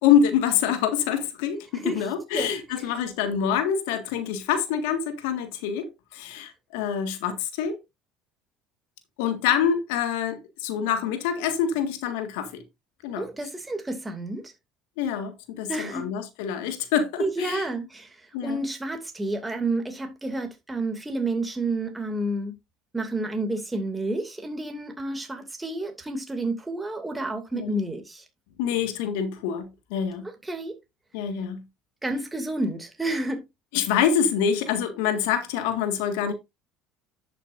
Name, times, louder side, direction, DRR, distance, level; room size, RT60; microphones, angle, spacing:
voice 1, 0.0-5.9 6.1-7.8 9.2-12.5 13.0-13.3 15.0-17.7 18.3-18.6 27.5-27.7 28.6-30.3 31.1-31.6 33.7-36.3, left 8 dB, 80° left, 1.8 m, -26 dB
voice 2, 13.2-14.5 15.7-16.1 17.2-18.2 18.4-22.5 22.9-28.2 30.4-30.7 32.0-33.4, right 2 dB, 10° right, 2.5 m, -30 dB
11.0 x 7.5 x 2.6 m
supercardioid pair, 85°, 0 cm